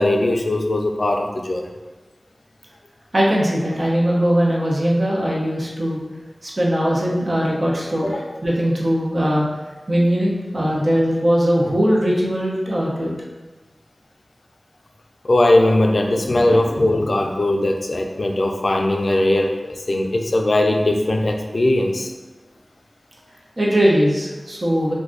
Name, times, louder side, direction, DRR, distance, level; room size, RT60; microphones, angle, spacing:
voice 1, 0.0-1.7 8.0-8.2 15.2-22.1, left 1 dB, 65° left, 3 dB, 0.3 m, -19 dB
voice 2, 3.1-6.0 6.4-9.5 9.9-13.1 16.4-16.6 23.6-24.9, equal, 55° right, -4 dB, 0.6 m, -20 dB
2.5 x 2.3 x 3.6 m, 1.2 s
wide cardioid pair, 70°, 0 cm